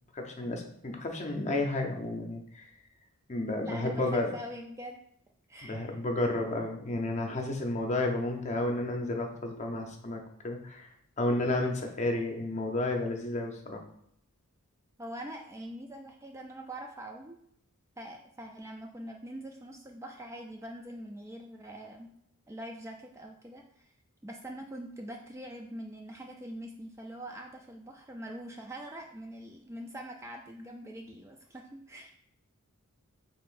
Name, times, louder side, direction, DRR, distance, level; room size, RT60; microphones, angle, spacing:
voice 1, 0.1-2.6 3.3-4.3 5.6-10.9 11.2-13.8, left 2 dB, 30° left, 3 dB, 0.7 m, -31 dB
voice 2, 3.6-5.0 5.5-6.0 15.0-17.4 18.0-22.1 22.5-23.9 24.2-32.1, right 1 dB, 15° right, 2 dB, 0.4 m, -43 dB
5.8 x 3.6 x 2.5 m, 0.73 s
head